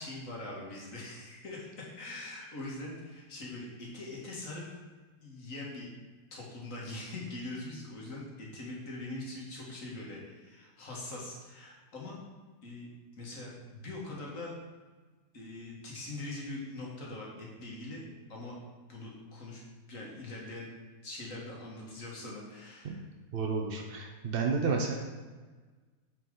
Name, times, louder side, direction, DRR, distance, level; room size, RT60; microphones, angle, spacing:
voice 1, 0.0-4.7 5.2-5.9 6.3-12.2 12.6-12.9 13.2-14.5 15.3-18.0 18.3-18.5 18.9-19.6 19.9-20.7 21.0-23.0, left 2 dB, 50° left, -3 dB, 2.0 m, -42 dB
voice 2, 23.3-24.9, right 5 dB, 70° right, 2 dB, 0.5 m, -31 dB
8.8 x 4.7 x 3.8 m, 1.4 s
omnidirectional pair, 1.8 m